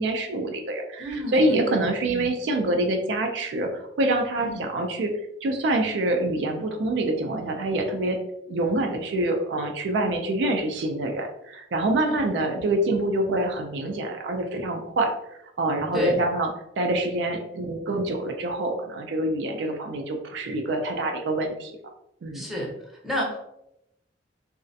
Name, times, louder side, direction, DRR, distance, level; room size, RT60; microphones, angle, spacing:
voice 1, 0.0-5.1 5.4-8.2 8.5-15.1 15.6-16.5 16.8-21.7 22.2-22.5, right 2 dB, 85° right, 4 dB, 0.4 m, -26 dB
voice 2, 1.0-2.3 4.4-4.6 12.1-12.4 15.9-16.2 22.3-23.4, equal, ahead, -4 dB, 0.5 m, -32 dB
2.3 x 2.1 x 2.6 m, 0.81 s
head